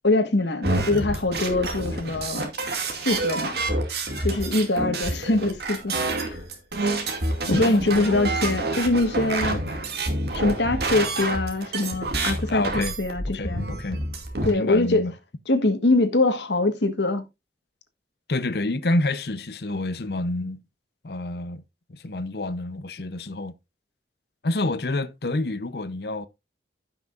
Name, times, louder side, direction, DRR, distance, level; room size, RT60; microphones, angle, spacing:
voice 1, 0.0-2.5 3.0-3.6 4.2-6.4 7.5-9.6 10.3-13.7 14.4-15.0 15.5-17.2, left 2 dB, 85° left, 1.6 m, -23 dB
sound 1, 0.6-14.5, right 2 dB, 70° right, 2.4 m, -28 dB
voice 2, 7.5-8.2 12.5-13.0 13.3-14.0 14.4-15.1 18.3-20.6 21.0-21.6 21.9-23.6 24.4-26.3, left 2 dB, 65° left, 0.8 m, -28 dB
15.5 x 5.9 x 2.5 m
head